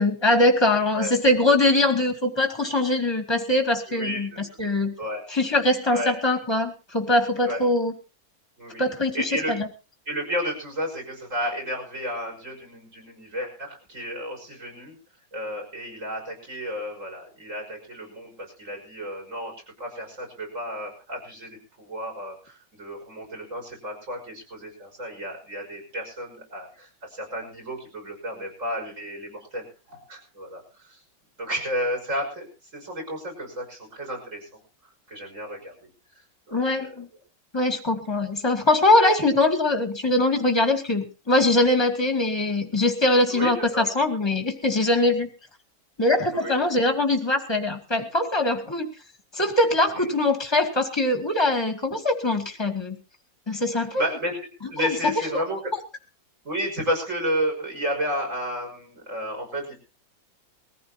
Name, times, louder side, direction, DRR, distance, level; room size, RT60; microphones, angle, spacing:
voice 1, 0.0-4.9 5.3-7.9 8.8-9.7 36.5-37.1 37.5-45.3 46.0-48.9 49.3-53.0 53.5-54.0 54.8-54.9, left 2 dB, 15° left, 4 dB, 2.2 m, -22 dB
voice 2, 3.9-4.4 5.0-5.2 5.9-6.1 7.4-7.7 8.6-9.5 10.1-15.0 15.3-19.5 19.8-31.0 31.4-32.5 32.7-34.6 35.1-35.9 36.5-36.9 43.3-43.9 45.1-45.3 46.3-46.6 49.9-50.1 53.7-54.4 54.6-55.7 56.4-59.7, equal, 40° right, 1 dB, 6.1 m, -32 dB
22.0 x 15.0 x 2.8 m, 0.33 s
omnidirectional pair, 2.1 m